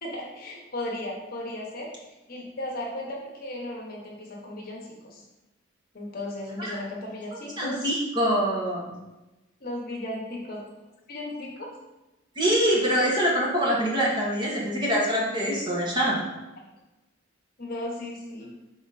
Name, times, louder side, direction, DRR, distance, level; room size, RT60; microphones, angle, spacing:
voice 1, 0.0-5.2 5.9-7.8 9.6-10.6 11.1-11.7 17.6-18.5, left 1 dB, 45° left, -1 dB, 1.1 m, -36 dB
voice 2, 7.6-8.9 12.3-16.2, equal, 20° right, -4 dB, 1.3 m, -24 dB
6.0 x 4.0 x 4.1 m, 1.0 s
head